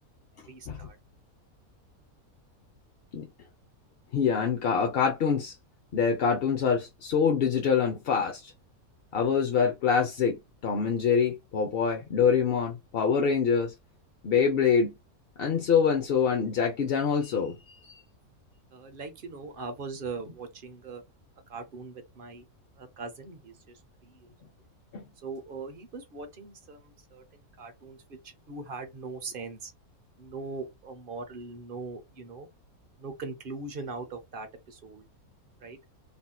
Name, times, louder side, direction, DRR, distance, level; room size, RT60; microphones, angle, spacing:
voice 1, 0.5-1.0 18.7-21.0 21.5-22.4 22.8-24.3 25.2-27.2 27.6-29.7 30.2-32.5 33.0-35.0 35.6-35.8, right 4 dB, 50° right, 0.7 m, -41 dB
voice 2, 4.1-5.6 5.9-8.5 9.1-13.7 14.2-14.9 15.4-18.0 24.9-25.0, left 6 dB, 60° left, 0.6 m, -25 dB
3.5 x 2.7 x 2.2 m
omnidirectional pair, 1.5 m